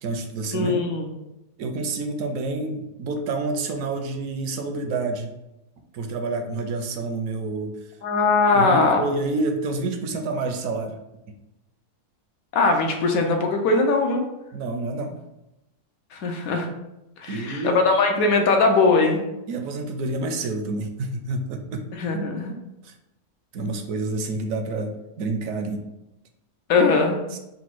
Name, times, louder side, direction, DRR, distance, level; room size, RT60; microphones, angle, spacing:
voice 1, 0.0-0.8 1.6-5.3 5.9-7.8 8.5-11.0 14.5-15.2 17.3-17.8 19.5-21.8 22.8-22.9 23.5-25.8 27.3-27.4, right 3 dB, 70° right, 5 dB, 0.8 m, -28 dB
voice 2, 0.5-1.1 8.0-9.0 12.5-14.3 16.1-16.7 17.2-19.2 21.9-22.5 26.7-27.2, left 3 dB, 70° left, 3 dB, 1.0 m, -20 dB
4.0 x 2.2 x 4.5 m, 0.91 s
omnidirectional pair, 1.7 m